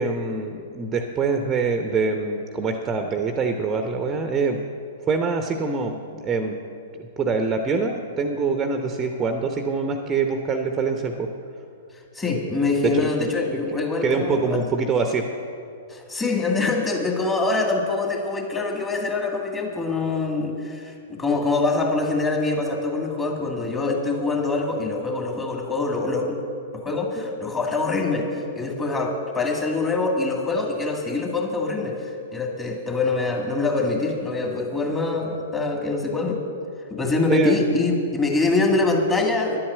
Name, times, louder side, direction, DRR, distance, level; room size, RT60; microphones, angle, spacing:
voice 1, 0.0-4.6 5.1-5.9 6.2-6.6 7.2-11.3 12.8-12.9 13.2-13.3 14.0-15.2 37.3-37.6, right 4 dB, 20° right, 5 dB, 0.8 m, -24 dB
voice 2, 12.1-14.6 15.9-26.4 26.7-36.4 36.9-39.6, left 3 dB, 15° left, 1 dB, 2.0 m, -24 dB
11.0 x 8.6 x 7.9 m, 2.5 s
figure-of-eight pair, 105°, 0 cm